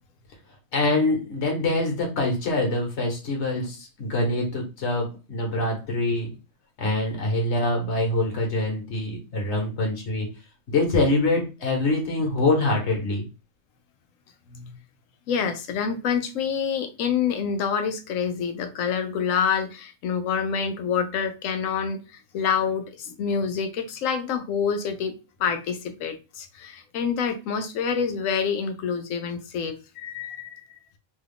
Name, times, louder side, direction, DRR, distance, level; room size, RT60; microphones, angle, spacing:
voice 1, 0.7-6.3 6.8-10.3 10.7-13.2, left 2 dB, 60° left, 1.4 m, -24 dB
voice 2, 15.3-30.6, left 6 dB, 85° left, 1.0 m, -27 dB
3.0 x 2.3 x 3.4 m
omnidirectional pair, 1.3 m